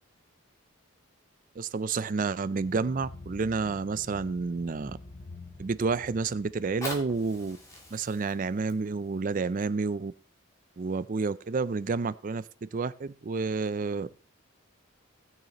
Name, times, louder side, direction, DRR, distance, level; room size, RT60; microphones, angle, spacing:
voice 1, 1.6-5.0 5.6-7.6 7.9-10.1 10.8-14.1, right 4 dB, 40° right, 16 dB, 0.4 m, -30 dB
sound 1, 2.6-8.6, left 2 dB, 35° left, 0.9 m, -48 dB
Fire, 6.8-11.5 12.2-12.3, left 1 dB, 15° left, 2.4 m, -45 dB
18.5 x 6.6 x 3.0 m, 0.38 s
head